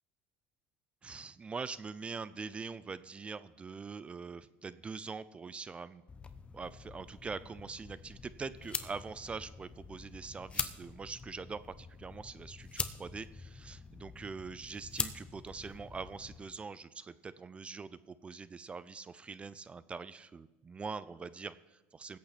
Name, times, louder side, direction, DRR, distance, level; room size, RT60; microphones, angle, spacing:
voice 1, 1.0-6.0 6.5-22.2, right 5 dB, 20° right, 15 dB, 0.5 m, -43 dB
sound 1, 6.1-16.4, left 4 dB, 20° left, 0.9 m, -43 dB
20.0 x 8.5 x 4.2 m, 1.1 s
supercardioid pair, 115°, 5 cm